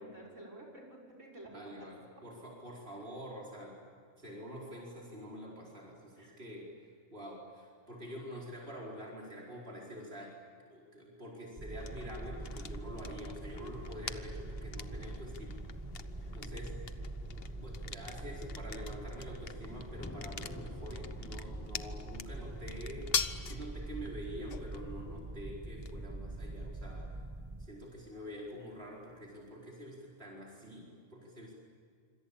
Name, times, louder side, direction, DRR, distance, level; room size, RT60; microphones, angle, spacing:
voice 1, 0.0-1.9 2.2-2.3 2.9-3.0 6.1-6.4 16.2-16.4, right 1 dB, 85° right, 0 dB, 6.6 m, -52 dB
voice 2, 1.5-3.8 4.2-6.7 7.1-10.4 10.7-15.6 16.3-16.7 17.6-23.1 23.4-27.2 27.6-31.5, equal, 55° right, -3 dB, 4.9 m, -46 dB
sound 1, 11.6-27.7, right 2 dB, 15° right, 1.1 m, -44 dB
sound 2, 11.8-29.5, left 6 dB, 55° left, 1.2 m, -45 dB
sound 3, 19.9-24.3, left 2 dB, 15° left, 0.7 m, -51 dB
26.0 x 26.0 x 8.7 m, 2.3 s
omnidirectional pair, 1.2 m